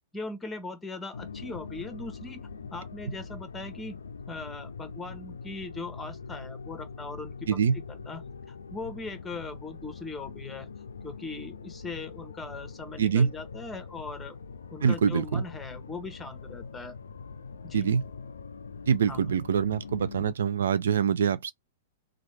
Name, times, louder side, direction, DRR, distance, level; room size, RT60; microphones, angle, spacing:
voice 1, 0.1-2.4 2.7-4.0 4.3-7.6 7.9-10.7 11.0-14.4 14.7-16.9 17.6-17.9 19.1-19.3, left 3 dB, 10° left, 1.0 m, -40 dB
sound 1, 1.1-20.3, left 5 dB, 80° left, 0.4 m, -43 dB
voice 2, 13.0-13.3 14.8-15.4 17.7-18.0 18.9-21.5, right 7 dB, 70° right, 0.3 m, -24 dB
3.1 x 2.3 x 3.3 m
hypercardioid pair, 110°, 0 cm